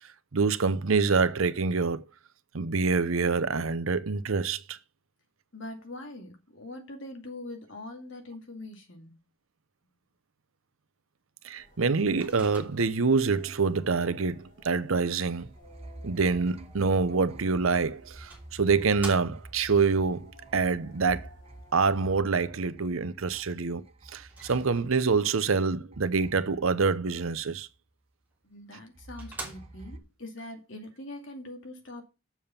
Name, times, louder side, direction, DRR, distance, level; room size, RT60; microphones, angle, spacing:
voice 1, 0.3-2.0 2.5-4.8 11.4-15.5 16.0-21.3 21.7-23.8 24.1-27.7, right 4 dB, 80° right, 0.8 m, -26 dB
voice 2, 5.5-9.1 28.4-32.1, left 1 dB, 65° left, 2.4 m, -43 dB
sound 1, 11.5-22.2, equal, 40° left, 5.6 m, -58 dB
Microwave oven, 12.2-13.1 17.5-17.6 18.3-19.7 24.3-25.2 28.3-28.4 28.8-28.9 29.2-30.1, right 2 dB, 10° right, 3.0 m, -44 dB
sound 2, 15.3-25.6 25.9-27.8 29.0-30.0, right 1 dB, 30° right, 0.8 m, -49 dB
7.1 x 7.0 x 5.7 m
head